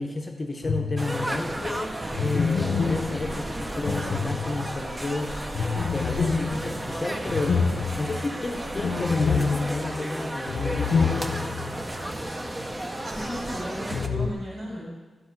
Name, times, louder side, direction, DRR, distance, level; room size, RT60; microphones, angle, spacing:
voice 1, 0.0-5.4 5.9-11.5, left 2 dB, 25° left, 3 dB, 0.7 m, -32 dB
sound 1, 0.6-1.4 2.1-4.9 5.5-11.8 12.0-12.1 13.9-14.3, left 5 dB, 75° left, 0.6 m, -27 dB
sound 2, 1.0-14.1, right 1 dB, 15° right, 0.5 m, -33 dB
voice 2, 13.0-14.9, equal, 50° right, -5 dB, 4.0 m, -35 dB
12.0 x 8.0 x 4.5 m, 1.3 s
wide cardioid pair, 175°, 0 cm